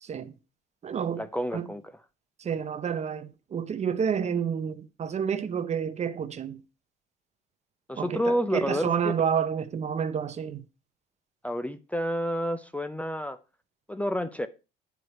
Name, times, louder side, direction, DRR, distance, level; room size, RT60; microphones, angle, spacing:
voice 1, 0.0-0.3 0.8-1.2 1.5-1.7 2.4-6.6 8.0-10.7, right 7 dB, 35° right, 0.8 m, -29 dB
voice 2, 1.2-1.8 7.9-8.8 11.4-13.4 13.9-14.5, equal, 5° left, 0.6 m, -29 dB
9.3 x 4.9 x 4.5 m
supercardioid pair, 95°, 19 cm